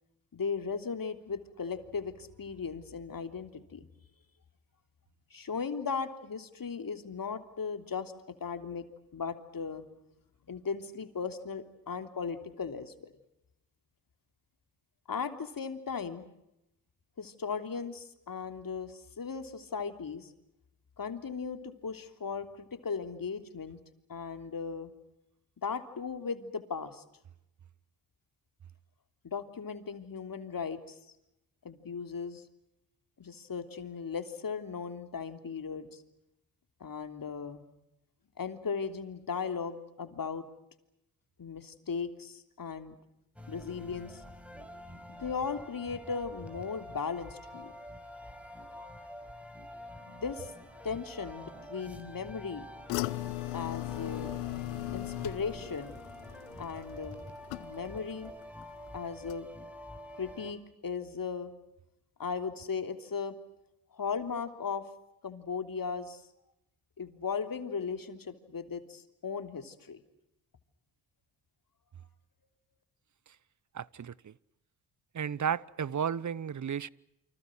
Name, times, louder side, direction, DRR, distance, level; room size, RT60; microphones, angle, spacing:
voice 1, 0.3-3.9 5.3-8.1 8.4-8.8 9.1-9.8 10.5-13.1 15.1-16.2 17.2-20.3 21.0-23.8 24.1-24.9 25.6-27.0 29.2-31.0 31.6-32.4 33.2-36.0 36.8-37.6 38.4-40.5 41.4-42.9 43.5-44.2 45.1-47.7 50.1-50.6 50.8-52.7 53.5-54.4 54.9-56.0 56.6-57.2 57.6-58.3 58.9-59.5 60.2-61.5 62.2-63.3 63.9-64.9 65.2-66.2 67.0-70.0, left 5 dB, 45° left, 3.3 m, -37 dB
sound 1, 43.4-60.5, equal, 5° right, 5.8 m, -47 dB
sound 2, 52.9-58.1 58.4-58.9 59.3-59.4, left 19 dB, 85° left, 0.9 m, -38 dB
voice 2, 73.7-74.3 75.1-76.9, right 8 dB, 35° right, 1.0 m, -33 dB
29.5 x 26.0 x 6.3 m
hypercardioid pair, 45°, 48 cm